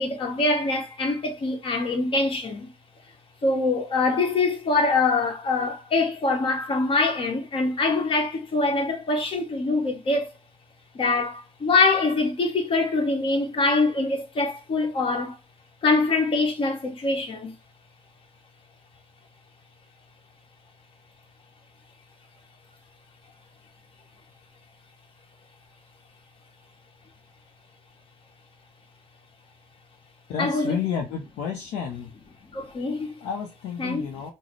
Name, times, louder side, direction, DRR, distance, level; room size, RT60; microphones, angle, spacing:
voice 1, 0.0-2.7 3.4-10.3 10.9-15.4 15.8-17.6 30.4-30.7 32.5-33.2 33.8-34.0, left 3 dB, 45° left, 1.1 m, -24 dB
voice 2, 30.3-32.1 33.2-34.3, left 7 dB, 70° left, 0.6 m, -31 dB
3.8 x 2.0 x 3.1 m
hypercardioid pair, 60°, 13 cm